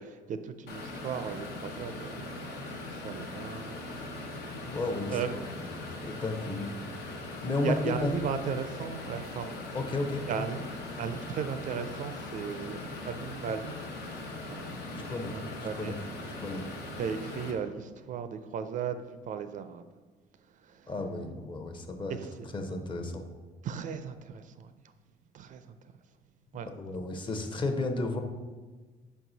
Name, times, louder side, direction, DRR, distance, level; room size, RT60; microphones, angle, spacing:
voice 1, 0.0-4.2 4.6-4.8 5.1-5.3 5.7-5.8 7.6-9.6 10.2-10.6 11.0-14.1 14.5-15.0 15.3-16.0 17.0-19.9 20.6-20.9 22.1-22.5 23.6-24.7 25.3-25.8 26.5-26.7, right 7 dB, 50° right, 10 dB, 0.4 m, -37 dB
sound 1, 0.7-17.5, left 2 dB, 80° left, 1.0 m, -40 dB
voice 2, 4.6-6.7 7.0-7.2 7.4-8.1 9.6-10.4 14.9-16.0 16.4-16.6 20.9-22.2 22.5-23.3 26.8-28.2, left 2 dB, 30° left, 5 dB, 0.7 m, -34 dB
5.4 x 4.7 x 3.9 m, 1.3 s
cardioid pair, 110°, 17 cm